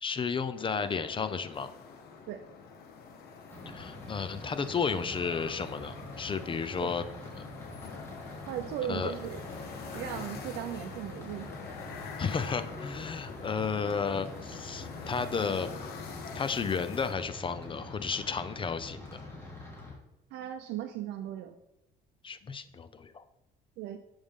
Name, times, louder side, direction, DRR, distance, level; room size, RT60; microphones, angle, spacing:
voice 1, 0.0-1.7 3.7-7.0 7.4-7.5 8.9-9.1 12.2-15.7 16.3-19.2 22.2-23.2, left 5 dB, 30° left, 11 dB, 0.6 m, -33 dB
sound 1, 0.5-17.1, left 5 dB, 70° left, 1.5 m, -45 dB
sound 2, 3.5-19.9, left 2 dB, 15° left, 3.1 m, -45 dB
voice 2, 8.5-9.4 9.9-11.5 20.3-21.6 23.8-24.0, right 11 dB, 85° right, 7 dB, 0.6 m, -37 dB
11.0 x 5.3 x 3.7 m, 0.95 s
cardioid pair, 110°, 17 cm